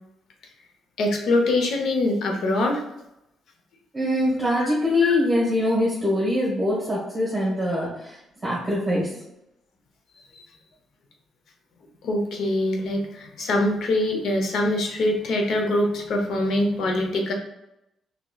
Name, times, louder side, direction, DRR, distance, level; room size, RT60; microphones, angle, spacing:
voice 1, 1.0-2.8 4.6-4.7 5.0-5.1 12.0-17.3, left 1 dB, 70° left, 2 dB, 0.7 m, -23 dB
voice 2, 3.9-8.2 8.4-9.2, left 1 dB, 25° right, -7 dB, 1.1 m, -23 dB
3.0 x 2.8 x 2.3 m, 0.85 s
cardioid pair, 90°, 0 cm